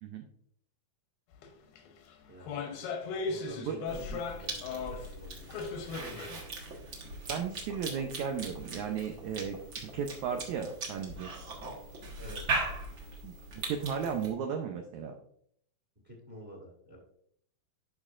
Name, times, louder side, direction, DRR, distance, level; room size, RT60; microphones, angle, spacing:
sound 1, 1.3-1.5 1.8-5.1 5.5-6.4 6.7-6.8 7.5-7.6, left 4 dB, 85° left, 2.9 m, -37 dB
voice 1, 2.3-2.7 3.2-5.5 12.2-12.6 16.0-17.0, equal, 25° right, 0 dB, 1.6 m, -49 dB
Cough / Chewing mastication, 3.9-14.3, right 3 dB, 50° right, 1.6 m, -39 dB
voice 2, 7.3-11.3 13.2-15.1, right 7 dB, 85° right, 4 dB, 1.6 m, -35 dB
12.0 x 5.3 x 2.5 m, 0.67 s
omnidirectional pair, 4.3 m